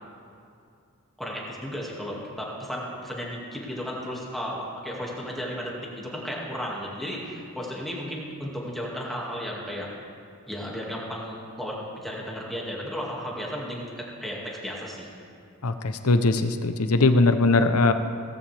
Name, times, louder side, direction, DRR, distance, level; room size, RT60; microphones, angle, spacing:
voice 1, 1.2-9.9 10.5-15.1, equal, ahead, -4 dB, 2.1 m, -34 dB
voice 2, 15.6-17.9, left 3 dB, 80° left, 8 dB, 0.8 m, -20 dB
17.5 x 14.5 x 3.4 m, 2.5 s
head